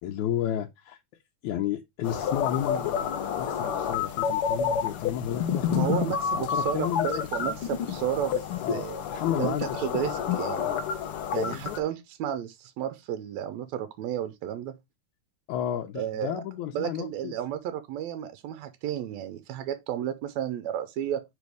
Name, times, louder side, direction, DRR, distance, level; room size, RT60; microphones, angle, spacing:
voice 1, 0.0-1.0 1.4-6.0 6.3-7.6 8.6-10.0 11.5-11.8 15.5-17.3, left 10 dB, 85° left, 2.1 m, -32 dB
sound 1, 2.0-11.8, left 7 dB, 65° left, 1.4 m, -29 dB
voice 2, 5.7-9.0 9.4-10.7 11.3-14.8 16.0-16.4 16.7-21.2, right 10 dB, 80° right, 1.9 m, -32 dB
5.2 x 4.9 x 4.7 m
omnidirectional pair, 3.3 m